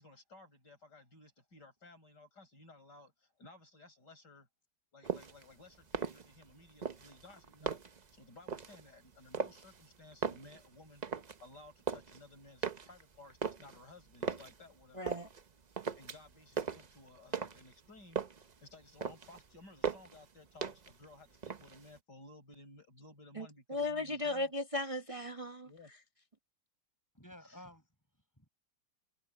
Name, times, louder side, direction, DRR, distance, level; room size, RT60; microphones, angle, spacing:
voice 1, 0.0-4.5 4.9-11.0 11.4-15.1 15.9-18.2 18.6-24.5 25.6-25.9 27.5-27.6, left 2 dB, 65° left, 8.0 m, -57 dB
sound 1, 5.0-5.4 5.8-6.5 6.8-8.1 8.5-8.8 9.3-9.8 10.1-11.4 11.7-12.2 12.6-14.6 15.1-15.5 15.8-16.3 16.6-17.7 18.0-18.5 18.8-19.4 19.8-20.2 20.6-21.0 21.3-22.0, right 6 dB, 50° right, 0.5 m, -38 dB
voice 2, 14.9-15.3 23.4-25.7, left 2 dB, 25° right, 0.8 m, -36 dB
voice 3, 27.1-28.5, left 1 dB, 10° left, 7.8 m, -55 dB
omnidirectional pair, 2.0 m